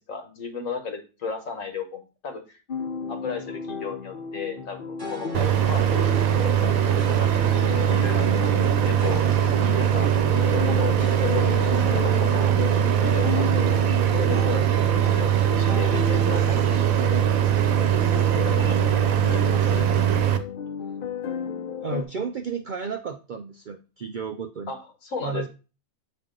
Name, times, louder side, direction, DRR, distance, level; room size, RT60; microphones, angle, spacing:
voice 1, 0.1-2.6 3.1-8.6 8.9-9.2 9.8-10.1 10.5-11.7 11.9-12.5 13.0-17.2 17.6-17.7 18.1-18.3 18.6-19.9 24.7-25.5, left 5 dB, 75° left, 6 dB, 1.5 m, -35 dB
sound 1, 2.7-22.0, left 6 dB, 50° left, 0.8 m, -33 dB
sound 2, 5.0-14.3, right 1 dB, 20° right, 1.2 m, -39 dB
sound 3, 5.3-20.4, right 10 dB, 85° right, 1.2 m, -21 dB
voice 2, 21.8-24.7 25.2-25.5, right 5 dB, 65° right, 6 dB, 0.4 m, -32 dB
7.6 x 4.4 x 3.8 m, 0.33 s
omnidirectional pair, 1.4 m